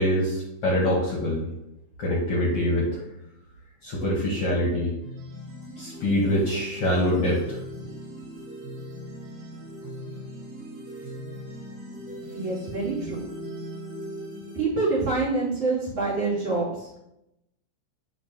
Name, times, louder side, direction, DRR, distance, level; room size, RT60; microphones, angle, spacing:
voice 1, 0.0-1.4 2.0-3.0 3.8-4.9 5.8-7.6, equal, 55° left, -3 dB, 1.9 m, -24 dB
sound 1, 5.0-14.6, equal, 85° right, 4.5 m, -39 dB
voice 2, 12.3-13.2 14.5-16.7, right 3 dB, 45° right, -5 dB, 3.7 m, -26 dB
10.0 x 5.5 x 2.9 m, 0.87 s
omnidirectional pair, 3.7 m